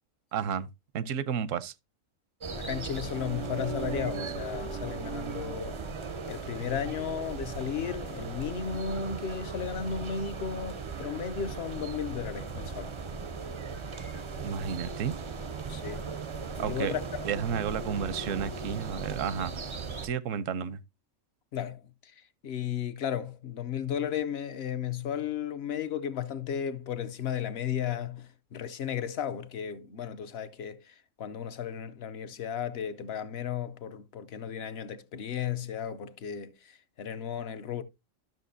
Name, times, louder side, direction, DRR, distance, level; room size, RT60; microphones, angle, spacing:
voice 1, 0.3-0.7 0.9-1.7 14.4-15.1 16.6-16.9 17.2-19.5 20.0-20.8, right 7 dB, 85° right, 1.0 m, -32 dB
sound 1, 2.4-20.1, right 4 dB, 45° right, 0.4 m, -37 dB
voice 2, 2.5-5.8 6.3-12.9 15.7-16.1 16.6-17.1 21.5-22.1 22.4-37.8, left 8 dB, 60° left, 0.8 m, -34 dB
12.0 x 6.6 x 2.6 m
omnidirectional pair, 1.3 m